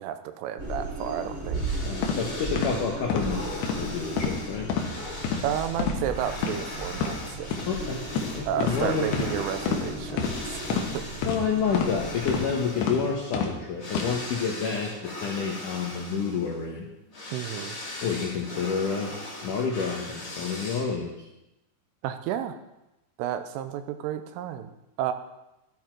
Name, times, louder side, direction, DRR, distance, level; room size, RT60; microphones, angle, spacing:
voice 1, 0.0-1.6 5.4-7.5 8.5-11.1 17.3-17.8 22.0-22.6 23.2-24.7 25.0-25.1, right 10 dB, 85° right, 9 dB, 3.3 m, -32 dB
sound 1, 0.6-12.5, right 1 dB, 30° right, 6.2 m, -36 dB
sound 2, 1.5-21.1, left 1 dB, 30° left, 1.6 m, -40 dB
voice 2, 1.8-3.5 3.7-4.7 7.7-8.1 8.3-9.2 11.2-16.9 18.0-19.1 19.4-21.2, left 5 dB, 85° left, 0 dB, 1.8 m, -29 dB
sound 3, 2.0-2.2 2.6-2.7 3.1-3.3 3.6-3.8 4.2-4.4 4.7-4.9 5.2-5.4 5.8-6.0 6.4-6.5 6.9-7.1 7.5-7.6 8.1-8.3 8.6-8.8 9.1-9.3 9.7-9.8 10.2-10.3 10.7-10.9 11.2-11.4 11.7-11.9 12.3-12.5 12.8-13.0 13.3-13.5 13.9-14.1, left 7 dB, 70° left, 3.0 m, -27 dB
13.0 x 9.6 x 4.5 m, 0.94 s
omnidirectional pair, 5.6 m